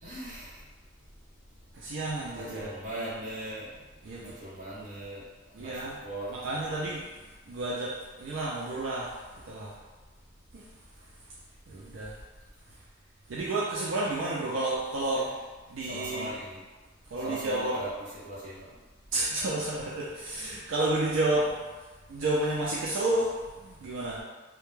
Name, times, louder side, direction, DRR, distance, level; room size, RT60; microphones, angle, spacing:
voice 1, 0.0-0.6 2.3-3.7 4.2-5.2 5.6-6.3 15.2-15.3 15.8-16.6 17.2-17.9 18.2-18.7, right 1 dB, 40° right, -8 dB, 0.9 m, -39 dB
voice 2, 1.8-2.7 4.0-4.3 5.5-6.0 6.3-7.0 7.5-7.9 8.2-9.1 9.4-9.7 11.7-12.1 13.3-15.3 15.7-16.3 17.1-17.7 19.1-21.6 22.1-23.3 23.6-24.2, right 2 dB, 75° right, -5 dB, 0.4 m, -30 dB
2.2 x 2.1 x 3.0 m, 1.2 s
head